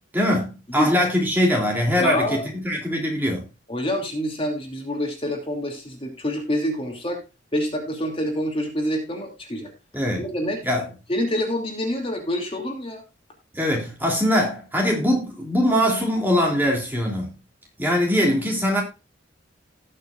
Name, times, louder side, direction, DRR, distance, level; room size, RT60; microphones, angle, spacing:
voice 1, 0.1-3.4 9.9-10.3 10.6-10.9 13.5-17.3 17.8-18.8, equal, 10° right, 2.9 m, -22 dB
voice 2, 2.0-2.5 3.7-7.2 7.5-9.7 10.2-10.6 11.1-13.0, equal, 30° left, 2.7 m, -26 dB
18.5 x 6.6 x 2.5 m
head